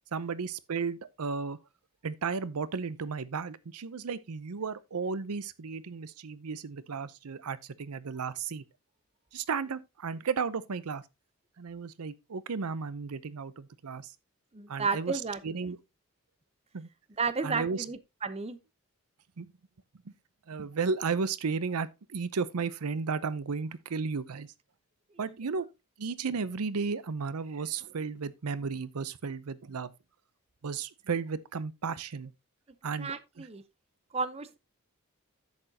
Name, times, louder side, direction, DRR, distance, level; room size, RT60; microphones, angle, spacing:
voice 1, 0.1-1.6 2.0-8.6 9.3-11.0 11.6-14.1 14.7-15.1 15.4-15.8 16.7-16.9 17.4-17.9 19.4-19.5 20.5-24.5 25.2-25.7 26.0-29.9 30.6-32.3 32.8-33.5, right 5 dB, 90° right, 0.6 m, -34 dB
voice 2, 14.5-15.4 17.2-18.6 25.2-25.3 33.0-33.6 34.1-34.6, right 4 dB, 30° right, 0.7 m, -32 dB
10.5 x 7.9 x 2.8 m
head